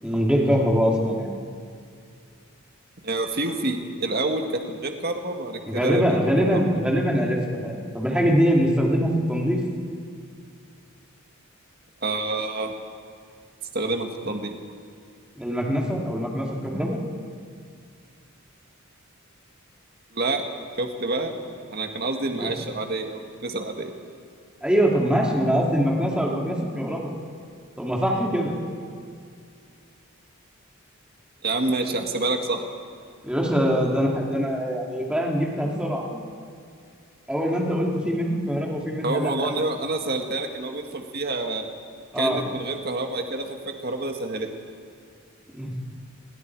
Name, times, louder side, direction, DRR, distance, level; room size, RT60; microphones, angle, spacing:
voice 1, 0.0-1.3 5.7-9.6 15.4-17.0 22.3-22.5 24.6-27.1 27.8-28.6 33.2-36.2 37.3-39.5 42.1-42.4 45.5-45.7, equal, 5° right, -2 dB, 2.8 m, -23 dB
voice 2, 3.0-6.6 12.0-12.7 13.7-14.6 20.1-20.4 20.8-21.4 21.7-23.9 31.4-32.6 39.0-41.7 42.2-44.5, right 2 dB, 45° right, 4 dB, 1.9 m, -28 dB
29.0 x 22.0 x 4.8 m, 2.2 s
head